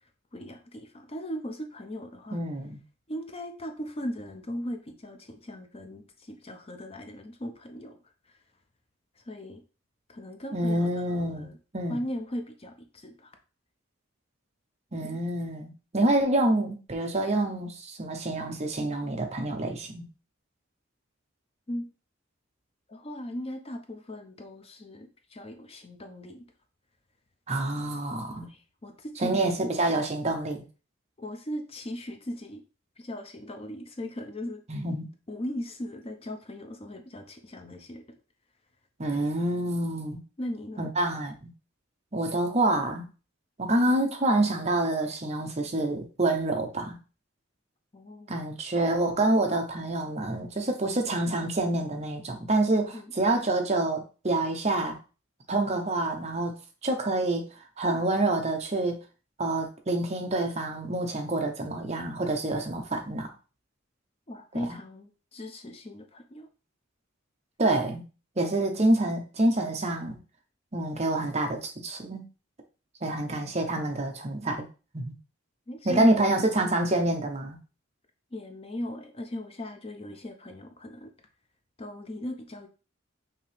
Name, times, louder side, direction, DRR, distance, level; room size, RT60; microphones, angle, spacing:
voice 1, 0.3-2.4 3.1-7.9 8.3-8.4 9.2-9.6 10.1-11.6 11.9-13.4 15.0-15.2 21.7-21.9 22.9-26.5 28.4-30.0 31.2-32.6 33.0-34.6 35.3-38.0 39.1-39.2 40.4-40.9 47.9-48.3 52.9-53.1 64.3-66.5 75.7-76.4 78.3-81.1 81.8-82.7, equal, 30° left, 0.5 m, -38 dB
voice 2, 2.3-2.8 10.5-11.5 11.7-12.0 14.9-20.1 27.5-28.5 29.2-30.6 34.7-35.1 39.0-40.2 40.8-41.5 42.1-43.1 43.6-47.0 48.3-55.0 55.5-56.5 56.8-57.5 57.8-59.0 59.4-63.3 64.7-64.8 67.6-68.0 68.4-70.2 70.7-72.2 73.0-74.7 74.9-75.1 75.9-77.6, right 2 dB, 30° right, 0.7 m, -27 dB
5.6 x 2.8 x 3.3 m
head